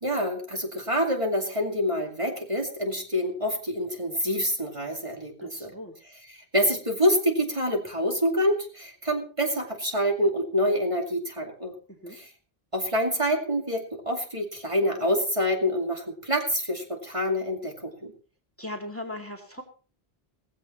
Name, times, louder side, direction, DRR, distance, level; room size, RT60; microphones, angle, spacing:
voice 1, 0.0-5.7 6.3-11.7 12.1-12.3 12.7-18.1, equal, 30° right, 1 dB, 2.4 m, -27 dB
voice 2, 5.4-5.9 11.9-12.2 18.6-19.6, left 1 dB, 15° left, 2 dB, 2.2 m, -38 dB
18.0 x 15.0 x 3.1 m, 0.34 s
omnidirectional pair, 1.0 m